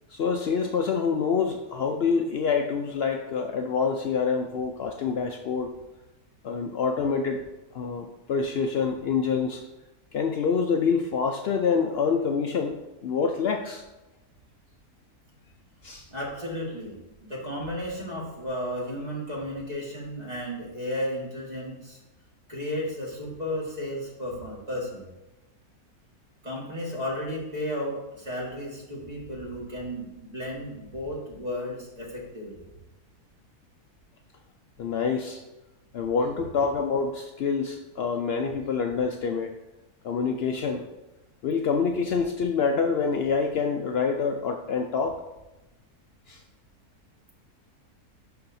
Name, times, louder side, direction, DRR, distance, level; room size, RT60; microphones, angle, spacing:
voice 1, 0.1-5.7 6.4-7.4 7.7-9.6 10.1-13.8 15.8-16.1 34.8-35.4 35.9-39.6 40.0-40.9 41.4-45.2 46.3-46.4, left 5 dB, 85° left, 4 dB, 0.5 m, -26 dB
voice 2, 16.1-22.0 22.5-25.1 26.4-32.7, equal, 25° right, -4 dB, 1.8 m, -34 dB
11.5 x 4.8 x 2.7 m, 1.0 s
omnidirectional pair, 1.6 m